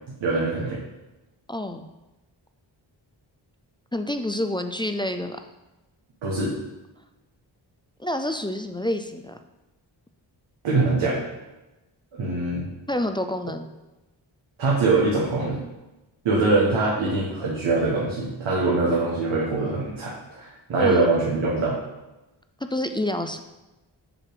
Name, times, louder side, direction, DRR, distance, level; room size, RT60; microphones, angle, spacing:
voice 1, 0.2-0.8 6.2-6.5 10.6-11.2 12.2-12.7 14.6-15.6 16.2-21.8, right 3 dB, 90° right, -5 dB, 1.2 m, -23 dB
voice 2, 1.5-1.9 3.9-5.4 8.0-9.4 12.9-13.7 20.8-21.1 22.7-23.4, left 1 dB, 10° left, 7 dB, 0.3 m, -28 dB
7.6 x 3.0 x 5.0 m, 1.0 s
cardioid pair, 60°, 47 cm